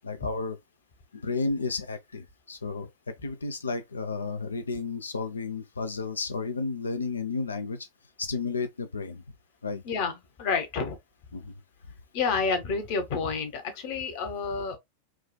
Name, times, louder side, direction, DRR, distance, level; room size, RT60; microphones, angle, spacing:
voice 1, 0.0-0.6 1.1-7.9 8.2-9.2 9.6-9.8 11.3-11.5, left 4 dB, 75° left, 0.6 m, -32 dB
voice 2, 10.4-11.0 12.1-14.8, left 5 dB, 45° left, 1.0 m, -29 dB
4.7 x 2.4 x 2.2 m
figure-of-eight pair, 90°, 0 cm